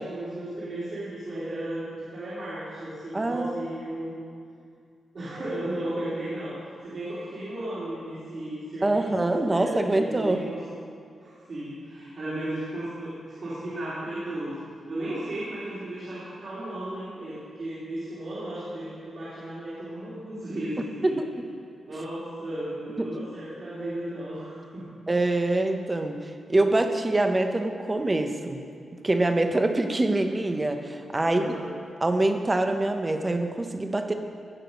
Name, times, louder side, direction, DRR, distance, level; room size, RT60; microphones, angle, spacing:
voice 1, 0.0-4.2 5.1-10.6 11.2-13.1 13.4-14.6 14.9-21.2 21.8-25.0 31.2-31.7, right 1 dB, 50° right, -11 dB, 3.1 m, -35 dB
voice 2, 3.1-3.6 8.8-10.4 21.0-21.2 23.0-23.1 25.1-28.6 29.0-31.5 32.0-34.1, right 2 dB, 15° right, 6 dB, 0.8 m, -25 dB
17.0 x 6.5 x 5.3 m, 2.3 s
wide cardioid pair, 160°, 0 cm